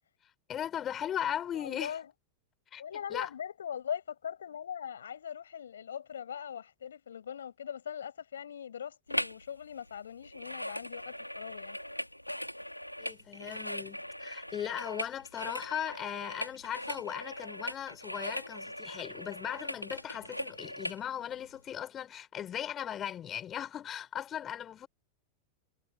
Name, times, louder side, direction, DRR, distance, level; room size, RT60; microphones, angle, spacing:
voice 1, 0.5-2.0 2.7-2.8 3.1-3.3 13.0-24.9, left 10 dB, 25° left, 6.2 m, -38 dB
voice 2, 1.5-2.1 2.8-11.8, left 8 dB, 65° left, 7.2 m, -41 dB
sound 1, 9.1-9.5 9.7-21.0 21.5-21.6, left 1 dB, 90° left, 3.2 m, -40 dB
figure-of-eight pair, 90°, 0 cm